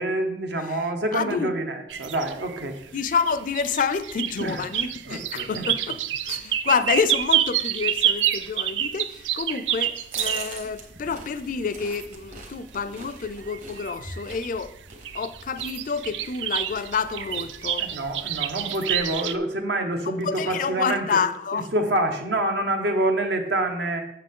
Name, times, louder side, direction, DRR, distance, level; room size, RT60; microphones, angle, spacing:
voice 1, 0.0-2.8 4.4-4.6 5.1-5.7 17.8-21.0 21.5-24.0, right 1 dB, 70° right, 1.1 m, -26 dB
voice 2, 1.1-1.5 2.9-14.7 15.1-17.9 20.1-21.7, left 5 dB, 50° left, 0.4 m, -28 dB
sound 1, 1.9-10.7 11.1-12.1 12.8-12.9 13.2-14.6 14.9-19.4, right 10 dB, 90° right, 0.4 m, -28 dB
sound 2, 10.1-18.7, right 3 dB, 45° right, 1.4 m, -43 dB
7.5 x 6.6 x 3.7 m
head